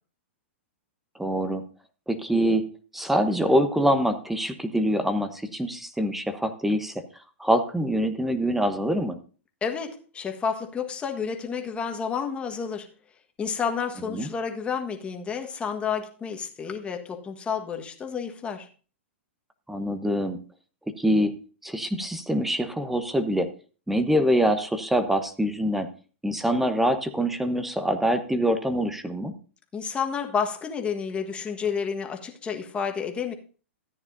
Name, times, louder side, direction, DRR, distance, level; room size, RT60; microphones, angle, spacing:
voice 1, 1.2-1.6 2.1-2.7 2.9-6.9 7.4-9.2 14.1-14.3 19.7-20.4 20.9-21.3 21.6-23.5 23.9-25.9 26.2-29.4, equal, 5° right, 10 dB, 0.9 m, -24 dB
voice 2, 9.6-12.9 13.4-18.7 29.7-33.3, left 6 dB, 15° left, 4 dB, 1.4 m, -30 dB
14.0 x 9.5 x 2.6 m, 0.38 s
hypercardioid pair, 135°, 7 cm